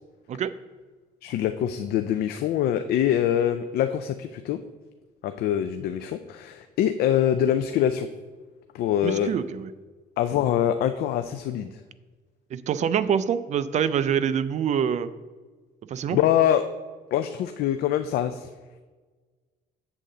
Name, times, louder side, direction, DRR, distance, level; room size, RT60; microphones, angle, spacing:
voice 1, 1.2-4.6 5.2-8.1 8.7-9.3 10.2-11.8 16.1-16.7 17.1-18.5, left 10 dB, 70° left, 8 dB, 0.4 m, -24 dB
voice 2, 9.0-9.7 12.5-15.1 15.9-16.2, right 8 dB, 45° right, 14 dB, 0.5 m, -25 dB
8.4 x 3.7 x 6.6 m, 1.4 s
cardioid pair, 110°, 17 cm